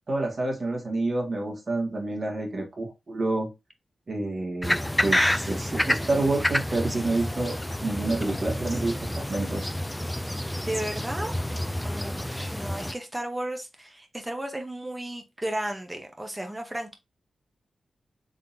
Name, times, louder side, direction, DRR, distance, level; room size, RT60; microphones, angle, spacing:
voice 1, 0.1-3.5 4.1-9.7, right 2 dB, 50° right, 2.0 m, -28 dB
sound 1, 4.6-12.9, left 1 dB, 10° left, 0.4 m, -29 dB
voice 2, 10.6-11.4 11.8-16.9, right 1 dB, 15° right, 1.2 m, -34 dB
3.8 x 3.4 x 2.8 m
cardioid pair, 60°, 0 cm